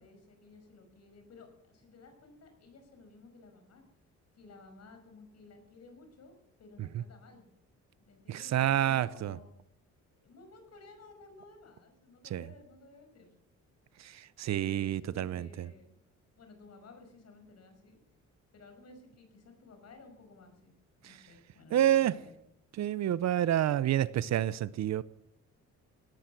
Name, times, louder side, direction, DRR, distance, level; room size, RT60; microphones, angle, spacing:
voice 1, 0.0-3.8 4.4-7.5 8.0-9.5 10.2-13.4 14.5-15.9 16.4-18.0 18.5-20.7 21.0-22.3, left 3 dB, 55° left, 5.7 m, -55 dB
voice 2, 8.3-9.4 12.3-12.5 14.0-15.7 21.7-22.1 22.8-25.0, right 11 dB, 60° right, 0.7 m, -28 dB
18.5 x 12.0 x 6.0 m
cardioid pair, 90°, 30 cm